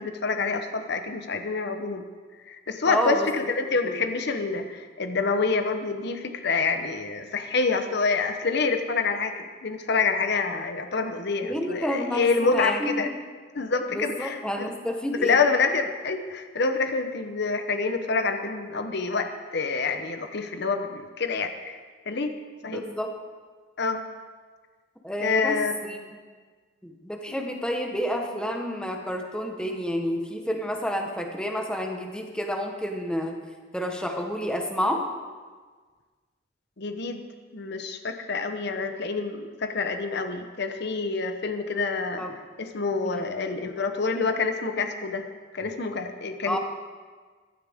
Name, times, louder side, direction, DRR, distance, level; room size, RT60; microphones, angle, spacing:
voice 1, 0.0-2.0 2.5-13.1 13.5-14.7 15.2-21.8 22.1-22.3 22.6-22.8 23.8-24.0 25.2-25.7 36.8-37.2 37.5-42.2 42.6-45.2 45.5-46.6, left 4 dB, 60° left, 7 dB, 0.9 m, -27 dB
voice 2, 2.9-3.5 3.8-4.0 11.4-13.1 13.9-15.4 22.7-23.1 25.0-26.1 26.8-33.4 33.7-35.0 42.2-42.3 43.0-43.2 46.5-46.6, equal, 5° left, 2 dB, 1.2 m, -29 dB
14.5 x 12.0 x 3.6 m, 1.5 s
head